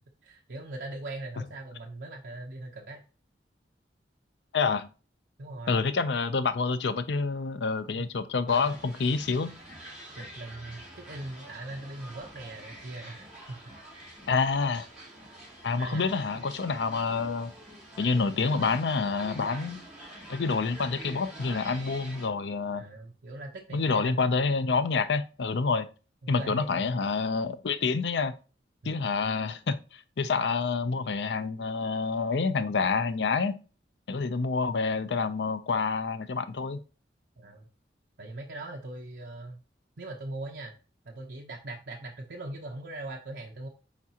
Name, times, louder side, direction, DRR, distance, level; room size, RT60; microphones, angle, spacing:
voice 1, 0.2-3.0 5.4-5.8 8.0-8.1 10.2-13.6 13.9-14.0 15.8-16.1 22.7-24.2 26.2-27.0 28.8-29.1 37.4-37.7 38.2-39.6 40.0-40.7 41.0-43.7, right 2 dB, 70° right, 0.8 m, -40 dB
voice 2, 4.5-4.9 5.7-9.5 14.3-14.9 15.6-17.5 18.0-19.8 20.3-22.8 23.7-25.9 26.3-28.3 28.8-33.6 34.1-36.8, left 4 dB, 75° left, 0.5 m, -28 dB
sound 1, 8.5-22.3, right 1 dB, 10° right, 3.8 m, -46 dB
7.2 x 4.6 x 2.8 m
head